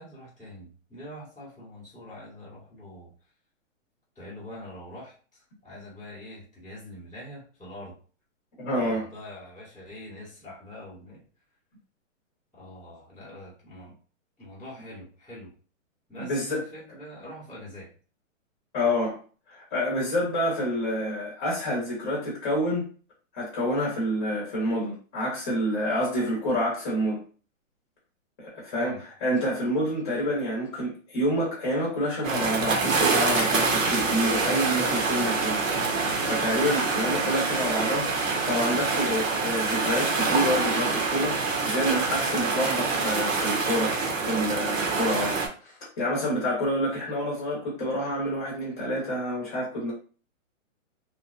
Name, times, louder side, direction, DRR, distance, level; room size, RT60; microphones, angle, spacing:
voice 1, 0.0-3.1 4.1-7.9 8.7-11.2 12.5-13.9 14.4-15.5 16.1-17.9 28.7-29.0, left 1 dB, ahead, -24 dB, 0.5 m, -44 dB
voice 2, 8.6-9.0 16.2-16.6 18.7-19.2 19.5-22.9 23.3-27.2 28.4-29.0 29.2-35.6 36.3-41.4 41.6-44.0 44.2-45.4 45.6-49.9, equal, 25° left, -5 dB, 0.9 m, -28 dB
sound 1, 32.2-45.5, right 4 dB, 70° right, 1.0 m, -26 dB
2.9 x 2.2 x 2.4 m, 0.39 s
hypercardioid pair, 170°, 39 cm